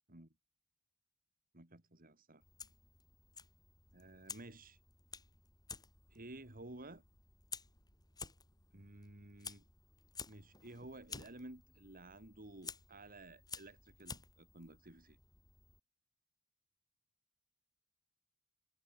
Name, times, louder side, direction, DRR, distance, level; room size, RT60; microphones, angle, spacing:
voice 1, 1.5-2.4 3.9-4.8 6.1-7.0 8.7-9.6 10.3-15.2, right 2 dB, 40° right, 3.1 m, -53 dB
Fire, 2.4-15.8, left 5 dB, 20° left, 4.7 m, -53 dB
head